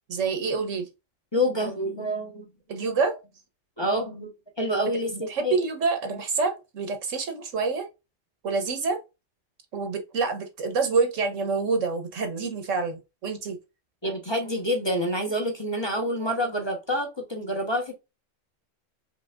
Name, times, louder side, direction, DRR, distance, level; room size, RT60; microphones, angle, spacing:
voice 1, 0.1-0.9 2.7-3.2 4.8-7.9 8.4-9.0 9.7-13.6, right 4 dB, 75° right, 1.4 m, -27 dB
voice 2, 1.3-2.5 3.8-4.3 4.6-5.6 14.0-17.9, equal, 20° left, 1.1 m, -27 dB
5.2 x 3.4 x 2.4 m
omnidirectional pair, 1.3 m